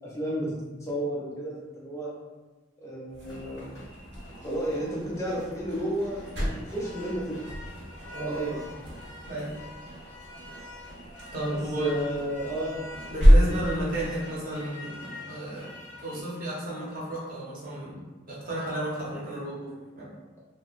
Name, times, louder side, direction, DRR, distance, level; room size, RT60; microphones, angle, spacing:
voice 1, 0.0-2.1 2.8-3.7 4.4-7.4 8.2-8.7 11.5-12.8, right 1 dB, 15° left, -6 dB, 0.5 m, -32 dB
sound 1, 3.1-14.2, equal, 80° right, 1.1 m, -28 dB
sound 2, 3.2-16.2, left 1 dB, 85° left, 0.9 m, -45 dB
voice 2, 8.1-8.6 9.3-9.6 11.3-11.9 13.1-15.0 15.3-15.7 16.0-20.1, right 1 dB, 50° right, -7 dB, 0.9 m, -33 dB
3.0 x 2.1 x 2.5 m, 1.2 s
head